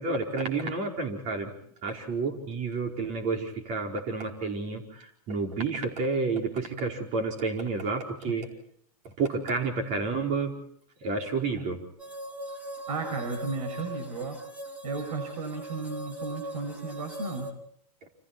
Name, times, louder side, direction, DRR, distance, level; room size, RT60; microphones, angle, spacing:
voice 1, 0.0-1.5 1.8-8.5 9.2-10.5 11.0-11.8, right 4 dB, 40° right, 3 dB, 4.8 m, -30 dB
sound 1, 12.0-17.5, equal, 5° right, 2.6 m, -40 dB
voice 2, 12.9-14.4 14.8-17.5, right 4 dB, 75° right, 6 dB, 5.9 m, -34 dB
29.5 x 27.5 x 4.3 m, 0.64 s
hypercardioid pair, 125°, 20 cm